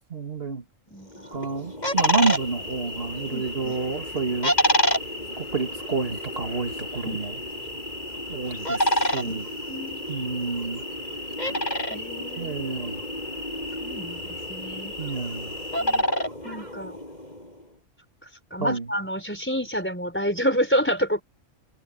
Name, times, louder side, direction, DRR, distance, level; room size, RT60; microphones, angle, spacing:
voice 1, 0.1-0.6 1.3-4.5 5.4-7.4 8.3-9.5 10.1-10.9 12.4-13.0 15.0-15.6 18.6-18.9, right 4 dB, 45° right, 2.5 m, -29 dB
voice 2, 0.9-1.4 3.3-3.8 7.0-7.2 9.2-9.4 9.7-10.1 11.9-12.6 13.8-15.0 15.8-16.1 16.4-17.0 18.5-21.2, equal, 10° left, 4.4 m, -29 dB
sound 1, 1.2-17.4, equal, 30° left, 6.7 m, -29 dB
sound 2, 2.0-16.0, left 2 dB, 75° right, 8.4 m, -38 dB
omnidirectional pair, 1.4 m